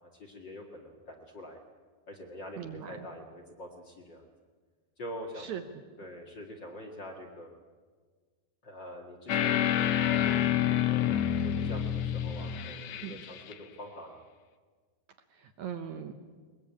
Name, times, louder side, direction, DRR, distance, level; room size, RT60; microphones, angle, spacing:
voice 1, 0.0-1.6 2.1-4.3 5.0-5.5 6.0-7.5 8.6-9.6 10.1-11.2 11.4-14.2, left 1 dB, 40° left, 1 dB, 1.7 m, -45 dB
voice 2, 2.6-3.1 5.4-5.6 13.0-13.2 15.3-16.1, right 8 dB, 70° right, 6 dB, 1.8 m, -40 dB
sound 1, 9.3-13.5, left 10 dB, 80° left, 1.5 m, -28 dB
21.5 x 21.0 x 8.6 m, 1.5 s
omnidirectional pair, 4.8 m